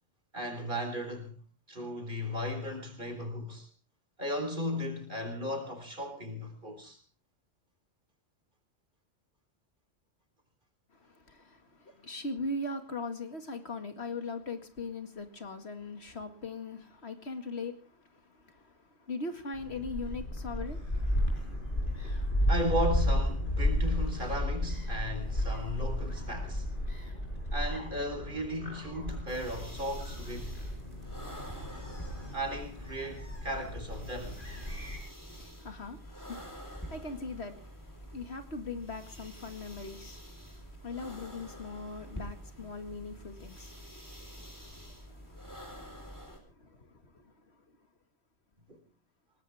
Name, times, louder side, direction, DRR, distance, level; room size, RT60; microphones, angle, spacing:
voice 1, 0.3-1.4 1.7-3.7 4.2-7.0 22.5-26.7 27.5-30.6 32.3-34.4 48.7-48.8, equal, 45° right, 4.3 m, -36 dB
voice 2, 10.9-21.0 35.3-47.3 47.7-47.8, left 3 dB, 65° left, 2.4 m, -41 dB
Gull seagull, 19.5-35.0, left 1 dB, 45° left, 6.3 m, -33 dB
sound 1, 29.3-46.4, equal, 15° left, 4.2 m, -47 dB
21.0 x 19.0 x 3.5 m
omnidirectional pair, 1.2 m